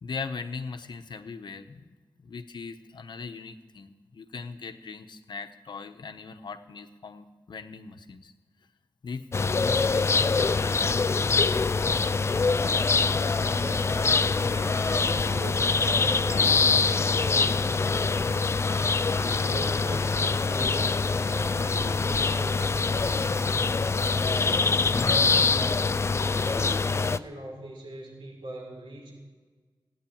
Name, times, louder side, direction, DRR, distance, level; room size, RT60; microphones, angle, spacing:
voice 1, 0.0-1.8 2.2-8.3 8.6-8.7 9.0-11.4, left 4 dB, 65° left, 8 dB, 1.0 m, -40 dB
sound 1, 9.3-27.2, left 4 dB, 35° left, 0.4 m, -24 dB
voice 2, 13.0-18.6 19.1-20.9 21.2-26.1 26.5-29.1, right 1 dB, 90° right, -2 dB, 6.0 m, -41 dB
16.5 x 9.4 x 8.7 m, 1.4 s
wide cardioid pair, 165°, 8 cm